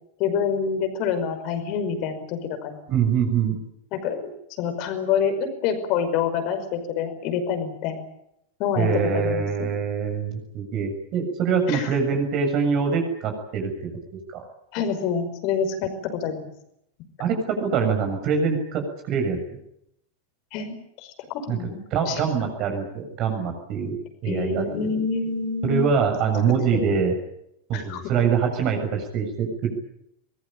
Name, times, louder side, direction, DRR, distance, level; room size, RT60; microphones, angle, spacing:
voice 1, 0.2-2.8 3.9-4.3 4.6-8.0 8.6-9.7 11.7-12.0 14.7-16.5 20.5-21.1 21.5-22.2 24.2-25.8 26.5-27.0 27.7-28.0, left 6 dB, 40° left, 8 dB, 5.3 m, -27 dB
voice 2, 2.9-3.6 8.8-13.9 14.3-14.4 17.2-19.4 21.5-24.7 25.6-27.1 27.7-29.8, right 6 dB, 40° right, 4 dB, 7.2 m, -24 dB
23.5 x 22.0 x 8.8 m, 0.77 s
figure-of-eight pair, 90°, 0 cm